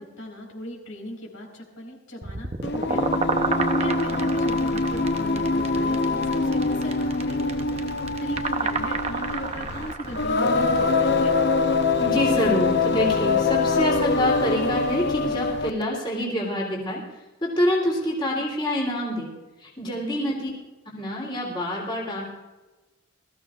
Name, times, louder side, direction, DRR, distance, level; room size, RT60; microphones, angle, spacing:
voice 1, 0.0-3.1 3.7-7.7 8.2-11.4 20.2-20.5, equal, 75° left, 1 dB, 4.5 m, -37 dB
sound 1, 2.2-10.3, right 4 dB, 30° right, 0.7 m, -30 dB
Singing, 2.6-15.8, left 3 dB, 50° left, 0.7 m, -24 dB
voice 2, 12.0-17.0 17.4-19.3 19.6-20.5 20.9-22.3, equal, 20° left, -3 dB, 3.1 m, -26 dB
22.0 x 14.5 x 2.5 m, 1.1 s
head